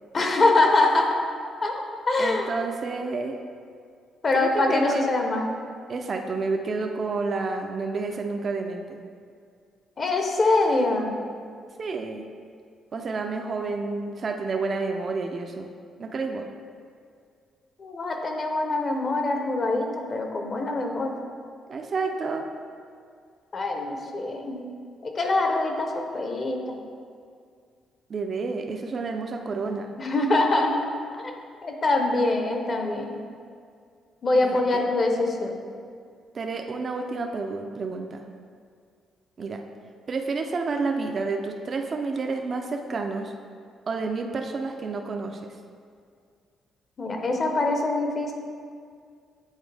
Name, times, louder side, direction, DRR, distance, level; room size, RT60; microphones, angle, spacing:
voice 1, 0.1-1.2 1.6-2.5 4.2-5.5 10.0-11.1 17.8-21.1 23.5-24.7 25.0-26.8 30.0-30.8 31.1-31.4 31.6-33.2 34.2-35.5 47.0-48.3, left 2 dB, 40° left, 3 dB, 0.8 m, -24 dB
voice 2, 2.2-3.4 4.3-5.0 5.9-9.0 11.8-12.3 12.9-15.7 16.0-16.4 21.7-22.4 28.1-29.9 34.4-34.8 36.3-38.2 39.4-39.6 40.1-43.3 43.9-45.4, right 4 dB, 45° right, 3 dB, 0.5 m, -30 dB
8.1 x 4.0 x 3.3 m, 2.2 s
cardioid pair, 90°, 0 cm